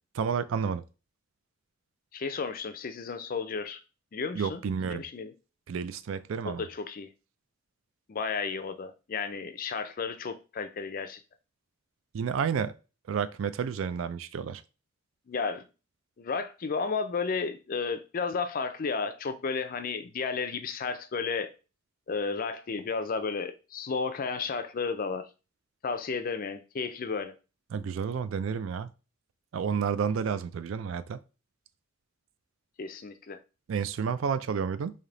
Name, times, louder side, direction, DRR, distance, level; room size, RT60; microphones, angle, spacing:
voice 1, 0.2-0.8 4.3-5.0 5.7-6.6 12.1-12.7 13.1-14.6 27.7-28.9 29.5-31.2 33.7-34.9, right 6 dB, 65° right, 0.3 m, -30 dB
voice 2, 2.1-3.8 4.1-5.3 6.5-7.1 8.1-11.2 15.3-15.6 16.2-21.5 22.1-25.3 25.8-27.3 32.8-33.4, left 5 dB, 40° left, 0.4 m, -33 dB
3.3 x 2.8 x 3.8 m
head